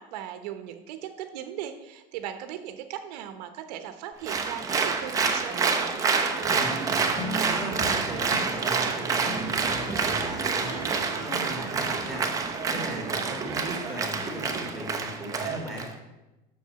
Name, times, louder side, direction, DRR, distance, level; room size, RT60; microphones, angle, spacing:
voice 1, 0.0-6.0 13.2-13.7, right 10 dB, 75° right, 8 dB, 1.0 m, -38 dB
Applause, 4.3-15.9, right 5 dB, 15° right, 0.8 m, -28 dB
sound 1, 6.2-14.8, equal, 25° left, 2.1 m, -40 dB
voice 2, 6.4-12.3 12.7-15.9, right 1 dB, ahead, 1 dB, 2.3 m, -38 dB
7.7 x 6.4 x 6.8 m, 1.0 s
cardioid pair, 165°, 21 cm